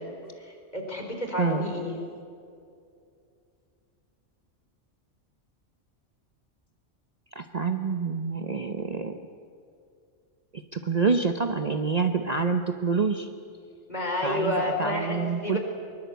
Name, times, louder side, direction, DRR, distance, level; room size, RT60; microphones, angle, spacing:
voice 1, 0.0-2.0 13.9-15.6, left 1 dB, 35° left, 1 dB, 4.3 m, -30 dB
voice 2, 7.3-9.2 10.5-13.3 14.2-15.6, right 5 dB, 35° right, 7 dB, 0.9 m, -27 dB
24.0 x 21.5 x 8.2 m, 2.4 s
omnidirectional pair, 1.3 m